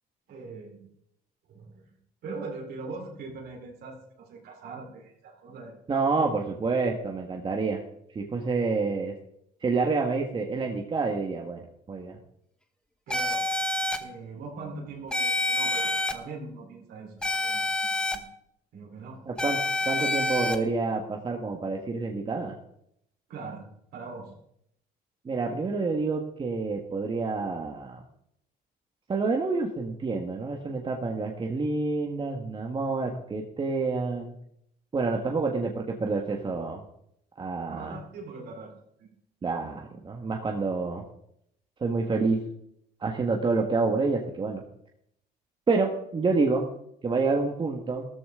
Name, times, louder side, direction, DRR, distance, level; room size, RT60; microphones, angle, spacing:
voice 1, 0.3-0.8 1.5-1.8 2.2-6.5 13.1-13.5 14.0-18.3 18.7-19.2 19.9-20.0 23.3-23.7 23.9-24.4 37.7-39.1, right 3 dB, 70° right, 0 dB, 4.0 m, -41 dB
voice 2, 5.9-7.8 8.1-9.1 9.6-11.6 11.9-12.2 19.3-19.6 19.8-22.6 25.2-28.0 29.1-34.3 34.9-36.8 37.4-38.0 39.4-41.0 41.8-42.4 43.0-44.6 45.7-46.7 47.0-48.1, right 4 dB, 30° right, 1 dB, 1.5 m, -28 dB
sound 1, 13.1-14.0 15.1-16.1 17.2-18.2 19.4-20.6, left 2 dB, 5° left, 1.1 m, -27 dB
13.5 x 13.5 x 3.7 m, 0.73 s
cardioid pair, 110°, 17 cm